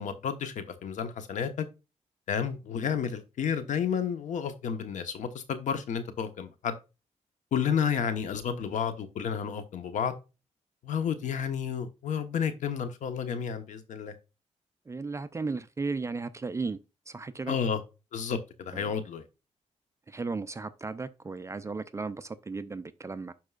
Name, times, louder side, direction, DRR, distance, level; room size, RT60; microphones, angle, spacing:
voice 1, 0.0-1.7 2.3-6.8 7.5-10.1 10.8-14.1 17.5-17.8 18.1-19.2, left 7 dB, 90° left, 1.1 m, -31 dB
voice 2, 14.9-16.8 17.1-17.6 18.7-18.9 20.1-23.3, right 4 dB, 25° right, 0.5 m, -35 dB
11.5 x 4.6 x 2.4 m
cardioid pair, 115°, 12 cm